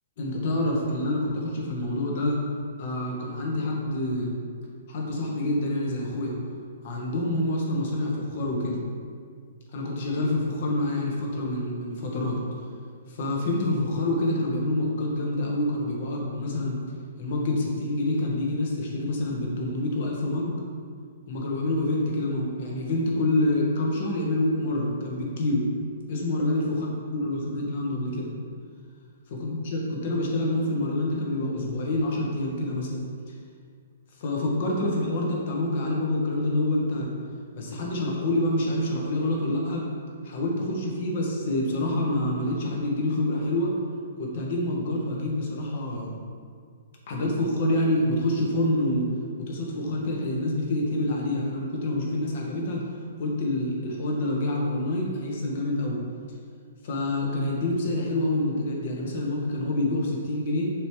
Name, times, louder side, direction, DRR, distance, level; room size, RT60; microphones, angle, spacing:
voice 1, 0.2-2.4 2.8-4.3 4.9-6.4 6.8-8.8 9.7-12.4 13.1-16.8 17.2-20.6 21.3-25.7 26.1-26.9 27.2-28.3 29.3-33.0 34.2-37.1 37.5-39.8 40.2-43.8 44.2-46.1 47.1-49.1 49.4-52.9 53.2-56.0 56.8-60.7, left 1 dB, 50° left, -2 dB, 1.3 m, -27 dB
6.5 x 3.2 x 4.9 m, 2.1 s
figure-of-eight pair, 120°, 0 cm